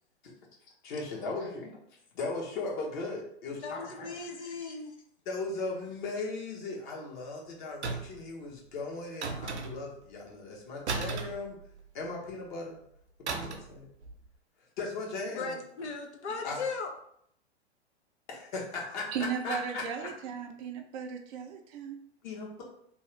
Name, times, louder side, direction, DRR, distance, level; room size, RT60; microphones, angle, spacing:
voice 1, 0.8-1.7 2.1-4.3 5.3-11.6 11.9-12.8 13.3-13.9 14.8-15.5 16.4-16.6 18.3-20.1 22.2-22.6, left 3 dB, 45° left, 1.0 m, -37 dB
voice 2, 3.6-5.0 15.3-16.9, left 4 dB, 85° left, 0.7 m, -37 dB
sound 1, 7.8-8.3 9.2-10.0 10.9-12.0 13.3-13.8 14.0-14.3, right 4 dB, 85° right, 0.6 m, -35 dB
voice 3, 19.1-22.0, right 7 dB, 30° right, 0.4 m, -36 dB
2.8 x 2.4 x 3.2 m
hypercardioid pair, 110°, 34 cm